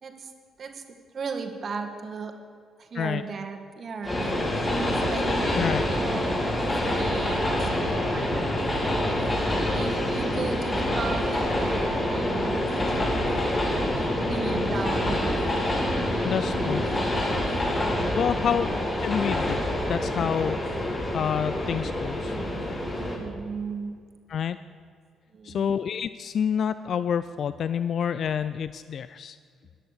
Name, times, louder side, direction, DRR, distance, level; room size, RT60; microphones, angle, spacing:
voice 1, 0.0-0.3 0.6-0.8 1.1-2.3 2.8-4.4 4.8-5.3 5.9-8.3 9.1-13.0 13.6-15.2 17.4-18.8 22.9-23.9 25.3-25.7, right 5 dB, 50° right, 5 dB, 1.7 m, -37 dB
Train, 4.0-23.2, left 1 dB, 35° left, 4.7 m, -26 dB
voice 2, 5.5-5.9 16.2-16.9 18.2-18.7 19.0-19.6 19.9-20.6 21.1-22.4 24.3-24.6 25.4-29.4, left 8 dB, 60° left, 14 dB, 0.4 m, -28 dB
14.5 x 10.5 x 6.6 m, 2.2 s
hypercardioid pair, 45°, 0 cm